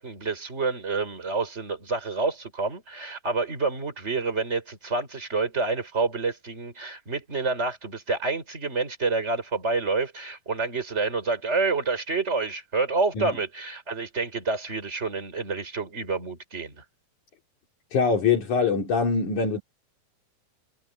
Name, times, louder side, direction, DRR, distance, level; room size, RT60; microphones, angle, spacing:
voice 1, 0.0-16.8, right 3 dB, 20° right, 5.4 m, -28 dB
voice 2, 17.9-19.6, left 5 dB, 70° left, 4.7 m, -23 dB
omnidirectional pair, 3.7 m